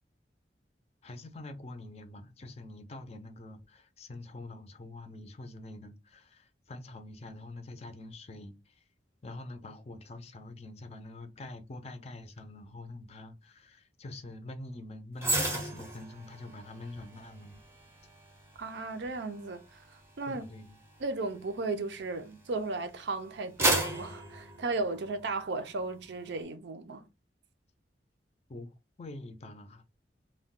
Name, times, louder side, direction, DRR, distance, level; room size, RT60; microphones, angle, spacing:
voice 1, 1.0-8.8 9.2-17.6 20.3-20.8 28.5-29.8, left 2 dB, 35° left, 0.4 m, -45 dB
sound 1, 15.2-22.6 23.1-25.4 25.8-26.0, right 2 dB, 15° right, 0.6 m, -35 dB
voice 2, 18.6-19.8 20.2-20.4 21.0-27.0, right 3 dB, 70° right, 0.5 m, -35 dB
2.2 x 2.2 x 3.5 m
head